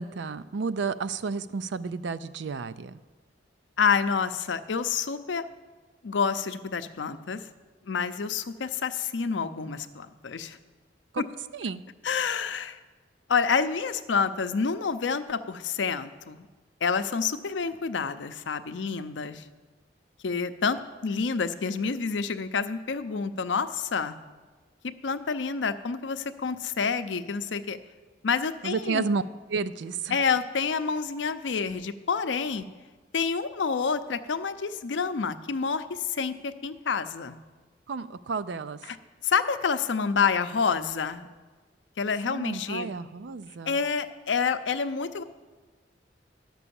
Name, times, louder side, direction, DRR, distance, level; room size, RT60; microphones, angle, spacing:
voice 1, 0.0-3.0 11.1-11.3 11.5-11.8 28.6-29.2 29.5-30.2 37.9-38.8 42.3-43.8, right 4 dB, 70° right, 14 dB, 0.4 m, -31 dB
voice 2, 3.8-5.5 6.0-7.4 7.9-10.6 12.0-12.8 13.3-16.5 16.8-19.4 20.2-24.2 25.0-27.8 28.2-29.1 30.1-32.7 33.1-37.4 38.8-39.0 39.2-41.3 42.0-42.9 43.7-45.2, left 5 dB, 90° left, 11 dB, 0.6 m, -28 dB
11.0 x 6.1 x 7.0 m, 1.3 s
head